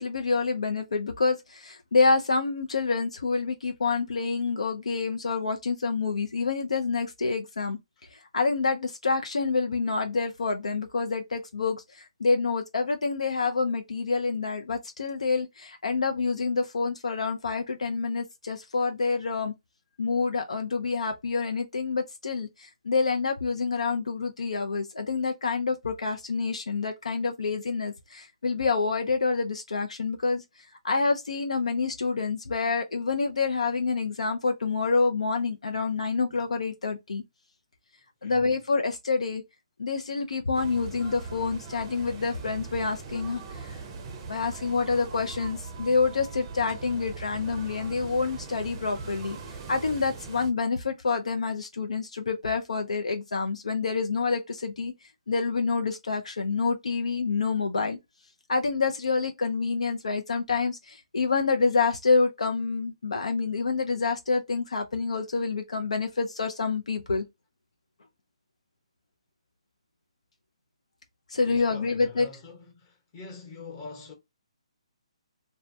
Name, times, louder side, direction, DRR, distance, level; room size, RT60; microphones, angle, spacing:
voice 1, 0.0-7.8 8.1-19.5 20.0-30.4 30.8-37.2 38.2-39.4 39.8-43.8 44.3-49.4 49.7-54.9 55.3-58.0 58.5-67.2 71.3-72.3, left 4 dB, 80° left, 0.5 m, -27 dB
sound 1, 40.5-50.5, right 4 dB, 30° right, 0.5 m, -41 dB
voice 2, 71.3-74.1, left 4 dB, 30° left, 1.0 m, -44 dB
2.2 x 2.1 x 2.6 m
hypercardioid pair, 145°, 3 cm